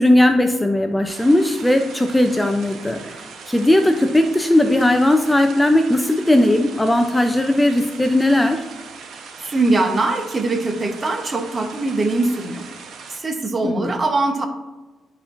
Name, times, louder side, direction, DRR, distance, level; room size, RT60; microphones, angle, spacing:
voice 1, 0.0-8.6 13.6-13.9, left 1 dB, 10° left, 5 dB, 0.5 m, -17 dB
sound 1, 1.1-13.2, right 5 dB, 70° right, 0.9 m, -39 dB
voice 2, 9.4-12.7 13.1-14.5, right 2 dB, 30° right, 6 dB, 1.0 m, -22 dB
11.5 x 4.4 x 2.6 m, 1.2 s
cardioid pair, 90°, 0 cm